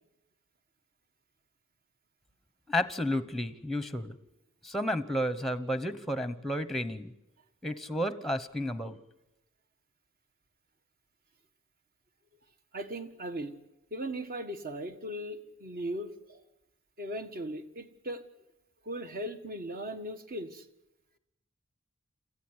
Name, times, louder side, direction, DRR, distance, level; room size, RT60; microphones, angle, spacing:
voice 1, 2.7-4.2 4.6-7.1 7.6-9.0, left 1 dB, ahead, 14 dB, 1.0 m, -32 dB
voice 2, 12.7-13.5 13.9-16.4 17.0-18.2 18.9-20.7, right 1 dB, 45° right, 9 dB, 1.7 m, -38 dB
27.0 x 14.5 x 9.7 m, 0.91 s
head